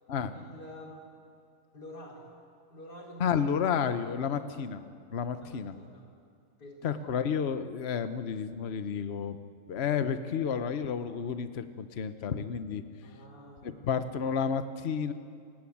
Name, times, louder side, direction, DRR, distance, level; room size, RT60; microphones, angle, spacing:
voice 1, 0.3-1.0 1.7-2.4 2.7-3.4 4.3-4.5 5.4-6.0 6.6-7.0 13.0-13.8, equal, 70° left, -1 dB, 4.9 m, -48 dB
voice 2, 3.2-4.8 5.1-5.8 6.8-9.4 9.7-12.8 13.6-15.1, left 7 dB, 45° left, 11 dB, 1.1 m, -31 dB
28.0 x 16.5 x 8.7 m, 2.3 s
omnidirectional pair, 1.8 m